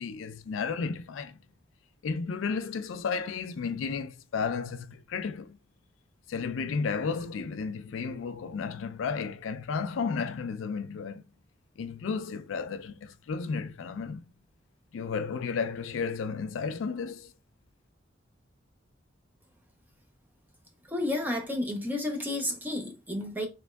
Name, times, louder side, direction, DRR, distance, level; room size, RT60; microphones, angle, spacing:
voice 1, 0.0-1.4 2.0-5.6 6.3-11.2 11.8-14.2 14.9-17.3, left 5 dB, 85° left, 0.4 m, -33 dB
voice 2, 20.9-23.5, left 1 dB, 10° right, 0.7 m, -31 dB
3.5 x 3.0 x 2.2 m
head